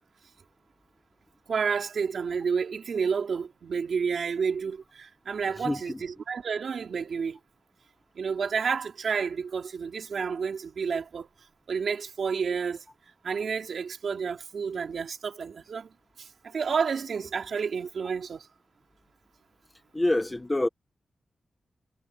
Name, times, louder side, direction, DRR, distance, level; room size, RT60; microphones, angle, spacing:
voice 1, 1.5-7.4 8.1-11.3 11.7-12.8 13.2-15.9 16.2-18.5, right 6 dB, 60° right, 3.4 m, -30 dB
voice 2, 5.6-6.0 19.9-20.7, left 1 dB, 15° left, 1.1 m, -26 dB
wide cardioid pair, 180°, 0 cm